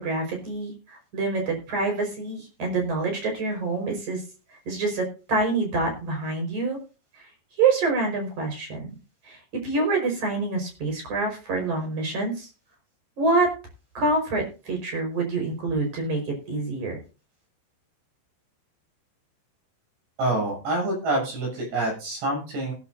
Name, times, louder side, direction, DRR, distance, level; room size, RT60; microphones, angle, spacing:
voice 1, 0.0-4.2 4.7-6.8 7.6-8.9 9.3-9.4 9.6-12.5 13.2-13.5 13.9-16.2 16.5-17.0, right 3 dB, 40° right, 3 dB, 6.0 m, -26 dB
voice 2, 20.2-22.7, right 2 dB, 65° right, -1 dB, 9.7 m, -26 dB
19.5 x 11.5 x 2.7 m, 0.33 s
omnidirectional pair, 5.3 m